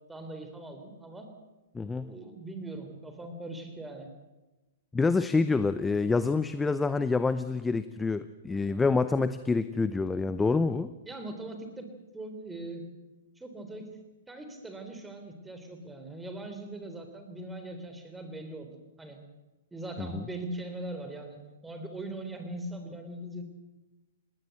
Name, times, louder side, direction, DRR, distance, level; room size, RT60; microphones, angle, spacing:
voice 1, 0.1-1.3 2.0-4.1 11.0-11.9 12.1-12.8 13.4-13.8 14.3-19.2 19.7-21.4 21.6-23.4, right 1 dB, 5° right, 6 dB, 3.6 m, -40 dB
voice 2, 1.7-2.1 4.9-10.9 20.0-20.2, left 4 dB, 10° left, 13 dB, 0.7 m, -27 dB
19.5 x 19.0 x 7.9 m, 1.1 s
hypercardioid pair, 130°, 0 cm